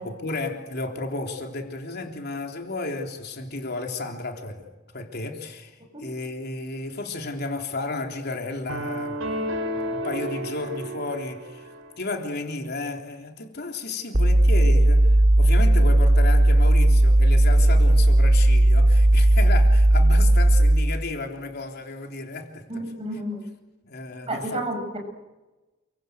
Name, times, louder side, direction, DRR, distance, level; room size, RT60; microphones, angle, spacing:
voice 1, 0.0-9.2 9.7-11.7 12.0-22.8 23.8-24.6, left 3 dB, 55° left, 3.6 m, -33 dB
sound 1, 8.7-11.9, right 1 dB, 70° right, 5.9 m, -31 dB
sound 2, 14.1-20.9, right 1 dB, 50° right, 2.5 m, -16 dB
voice 2, 22.7-23.5 24.2-25.0, right 1 dB, 30° right, 6.8 m, -31 dB
29.5 x 24.0 x 8.0 m
head